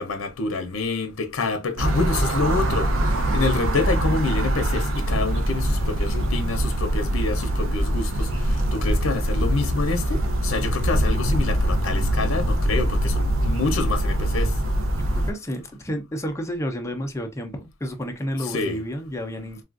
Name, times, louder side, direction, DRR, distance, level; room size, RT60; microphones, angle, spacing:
voice 1, 0.0-2.9 3.3-14.5 18.4-18.8, left 3 dB, 90° left, 0.6 m, -27 dB
sound 1, 1.8-15.3, right 1 dB, 75° right, 0.6 m, -23 dB
voice 2, 14.9-19.6, equal, 15° left, 0.5 m, -31 dB
3.5 x 2.4 x 2.4 m
head